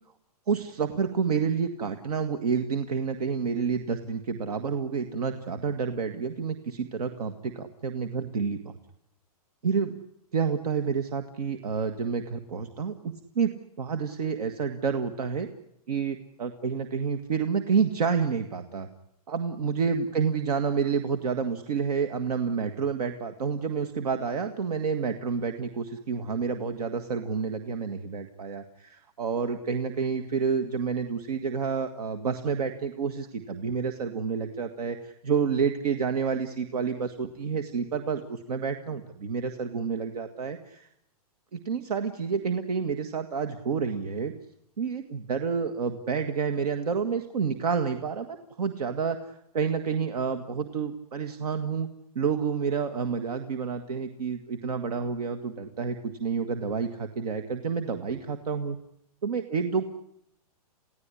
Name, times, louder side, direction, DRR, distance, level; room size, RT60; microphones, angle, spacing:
voice 1, 0.5-8.8 9.6-10.0 10.3-13.5 13.8-15.5 15.9-18.9 19.3-40.9 41.5-44.3 44.8-51.9 52.2-58.8 59.2-59.8, right 6 dB, 80° right, 8 dB, 2.0 m, -29 dB
29.0 x 16.5 x 9.9 m, 0.78 s
hypercardioid pair, 160°, 20 cm